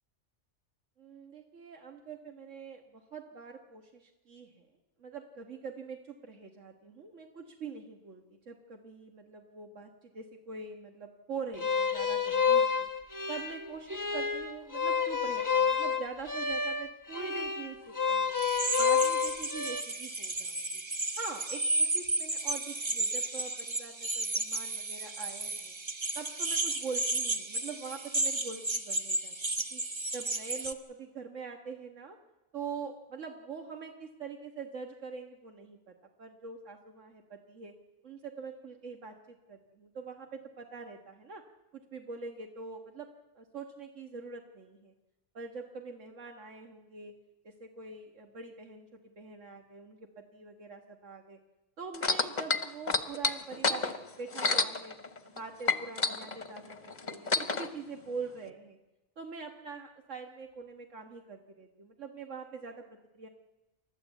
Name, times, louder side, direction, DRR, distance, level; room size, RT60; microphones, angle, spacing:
voice 1, 1.0-4.7 5.0-12.9 13.3-18.4 18.8-20.8 21.2-25.8 26.2-29.4 29.7-29.8 30.1-32.2 32.5-37.7 38.0-41.4 41.7-43.1 43.4-44.9 45.3-47.1 47.4-51.4 51.8-53.9 54.2-54.9 55.2-58.8 59.2-62.8 63.1-63.3, right 5 dB, 85° right, 3 dB, 1.8 m, -44 dB
sound 1, 11.6-19.8, left 6 dB, 15° left, 1.1 m, -29 dB
sound 2, 18.4-30.7, right 2 dB, 25° right, 1.0 m, -33 dB
sound 3, 51.9-55.4 55.6-57.7 58.5-58.6, left 3 dB, 40° left, 1.1 m, -29 dB
29.5 x 13.5 x 8.2 m, 1.0 s
omnidirectional pair, 1.3 m